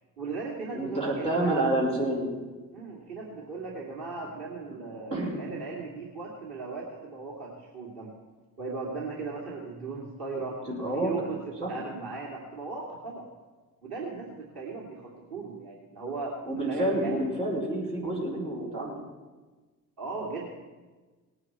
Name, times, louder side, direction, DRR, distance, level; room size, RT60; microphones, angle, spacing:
voice 1, 0.2-1.7 2.7-8.1 8.6-13.3 13.8-16.4 16.7-17.3 20.0-20.5, right 4 dB, 50° right, -4 dB, 2.6 m, -37 dB
voice 2, 0.7-2.3 4.7-4.8 5.1-5.4 10.7-11.1 11.6-11.7 16.4-19.0, right 1 dB, 75° right, -4 dB, 4.6 m, -28 dB
19.0 x 9.7 x 4.6 m, 1.3 s
figure-of-eight pair, 50°, 46 cm